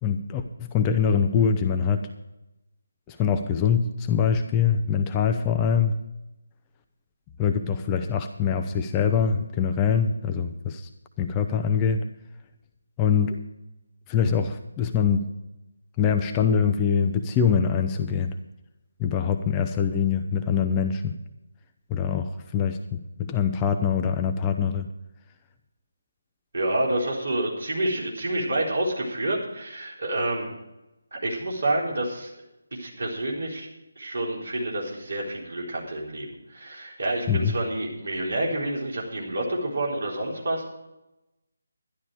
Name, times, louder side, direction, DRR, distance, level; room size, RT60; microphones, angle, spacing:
voice 1, 0.0-2.1 3.1-6.0 7.4-10.9 11.2-12.0 13.0-13.4 14.1-15.3 16.0-18.3 19.0-21.1 21.9-24.9 37.3-37.5, left 7 dB, 15° left, 5 dB, 0.6 m, -24 dB
voice 2, 26.5-30.5 31.1-32.3 32.7-33.7 34.0-40.7, right 1 dB, 55° right, -2 dB, 4.0 m, -28 dB
11.5 x 11.5 x 4.9 m, 0.95 s
figure-of-eight pair, 150°, 0 cm